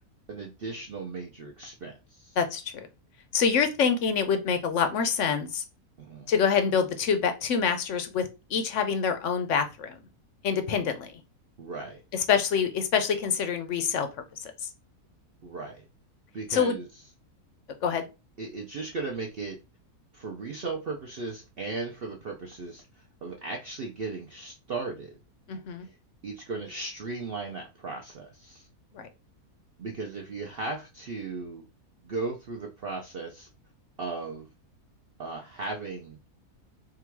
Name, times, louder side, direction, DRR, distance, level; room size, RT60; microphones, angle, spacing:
voice 1, 0.3-2.4 6.0-6.3 11.6-12.0 15.4-15.8 16.3-16.9 18.4-19.6 20.1-25.2 25.8-25.9 26.2-28.7 29.8-31.6 32.0-33.5 34.0-34.5 35.2-36.2, right 3 dB, 55° right, 0.7 m, -36 dB
voice 2, 2.4-2.9 3.3-5.6 6.3-10.0 10.4-11.2 12.1-14.1 14.4-14.5 16.5-16.8 17.8-18.0 25.5-25.9 28.9-29.1, left 6 dB, 65° left, 0.9 m, -26 dB
3.7 x 2.4 x 4.5 m
omnidirectional pair, 1.6 m